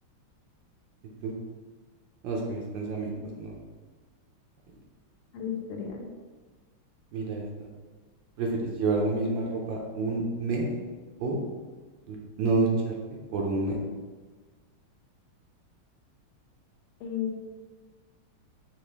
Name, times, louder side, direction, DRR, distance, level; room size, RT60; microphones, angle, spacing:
voice 1, 2.2-3.6 4.7-4.8 7.1-7.7 8.4-10.7 11.2-11.4 12.1-13.0 13.3-13.8, right 3 dB, 70° right, 0 dB, 1.2 m, -29 dB
voice 2, 5.3-6.1 17.0-17.4, left 8 dB, 85° left, 0 dB, 1.6 m, -34 dB
5.0 x 2.8 x 3.2 m, 1.4 s
omnidirectional pair, 2.4 m